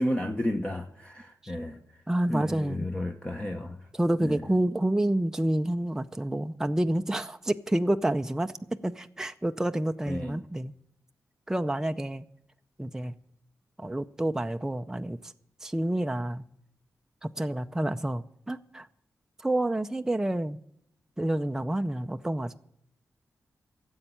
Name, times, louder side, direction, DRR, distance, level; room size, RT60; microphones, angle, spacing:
voice 1, 0.0-1.8 2.3-3.8 4.2-4.4 10.1-10.4, left 1 dB, 20° left, 1.1 m, -32 dB
voice 2, 2.1-2.9 3.9-10.7 11.5-12.2 12.8-13.1 13.8-15.3 15.6-16.4 17.2-18.9 19.4-20.6 21.2-22.6, right 1 dB, 10° right, 0.5 m, -28 dB
13.0 x 8.1 x 8.7 m
wide cardioid pair, 95°, 6 cm